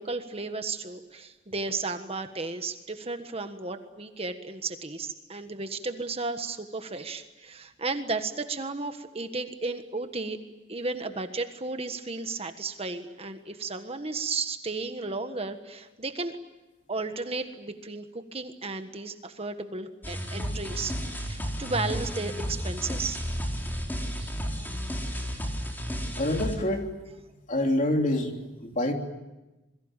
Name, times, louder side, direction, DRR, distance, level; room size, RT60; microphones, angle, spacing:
voice 1, 0.0-10.4 10.7-16.4 16.9-21.0 21.3-23.2 24.2-24.3, right 3 dB, 30° right, 8 dB, 1.5 m, -34 dB
sound 1, 20.0-26.6, equal, 10° left, 4.2 m, -32 dB
voice 2, 26.2-26.9 27.5-28.3 28.6-28.9, left 1 dB, 40° left, 3 dB, 3.3 m, -26 dB
27.5 x 22.5 x 9.0 m, 1.0 s
head